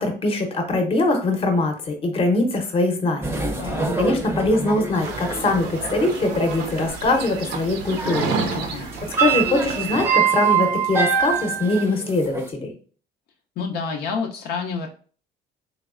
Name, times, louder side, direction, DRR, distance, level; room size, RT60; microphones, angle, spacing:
voice 1, 0.0-3.4 4.0-8.3 8.7-8.9 9.2-12.7, left 2 dB, 35° left, 5 dB, 0.8 m, -22 dB
sound 1, 3.2-8.6 8.9-12.4, right 6 dB, 15° right, 0.5 m, -25 dB
voice 2, 3.6-3.9 8.5-8.9 13.6-14.9, left 5 dB, 75° left, 1 dB, 0.6 m, -29 dB
sound 2, 5.0-10.1, right 4 dB, 75° right, 0.6 m, -31 dB
3.3 x 3.1 x 2.4 m, 0.41 s
cardioid pair, 110°, 17 cm